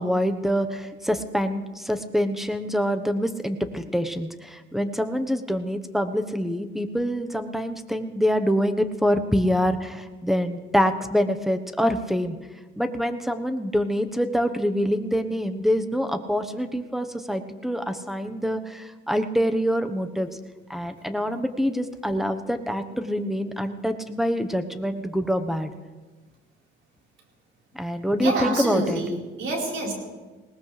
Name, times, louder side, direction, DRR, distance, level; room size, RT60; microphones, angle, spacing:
voice 1, 0.0-12.4 12.8-20.3 20.7-25.7 27.7-29.0, equal, ahead, 8 dB, 1.1 m, -25 dB
voice 2, 28.2-29.9, right 2 dB, 75° right, -2 dB, 4.5 m, -27 dB
20.0 x 18.5 x 3.4 m, 1.3 s
cardioid pair, 90°, 20 cm